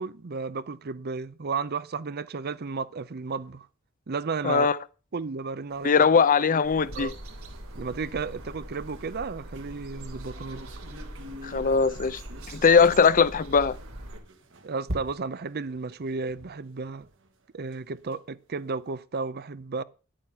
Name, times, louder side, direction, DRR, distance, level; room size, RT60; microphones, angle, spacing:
voice 1, 0.0-3.7 4.1-4.7 5.1-6.0 6.9-7.1 7.7-10.6 14.6-17.1 17.5-19.8, right 4 dB, 50° right, 0.6 m, -33 dB
voice 2, 4.4-4.8 5.8-7.1 11.4-12.2 12.5-13.8, left 5 dB, 40° left, 0.5 m, -20 dB
sound 1, 5.7-18.2 18.6-18.7 18.9-19.0, equal, 65° right, 1.7 m, -46 dB
sound 2, 6.6-14.2, right 1 dB, 80° right, 2.9 m, -42 dB
10.5 x 8.9 x 5.4 m
head